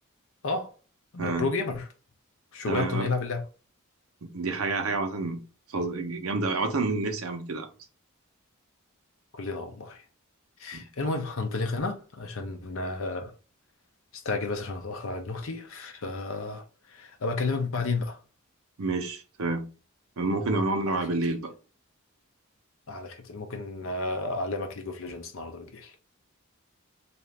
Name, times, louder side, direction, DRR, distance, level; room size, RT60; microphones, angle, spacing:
voice 1, 1.1-1.8 2.5-3.4 9.4-10.0 10.6-13.3 14.1-16.6 16.9-18.2 20.9-21.4 22.9-25.9, left 3 dB, 65° left, 0.7 m, -32 dB
voice 2, 2.7-3.1 4.2-5.4 5.7-7.7 10.7-10.8 18.8-19.7 20.2-21.5, right 3 dB, 75° right, 0.7 m, -29 dB
2.8 x 2.5 x 3.2 m
head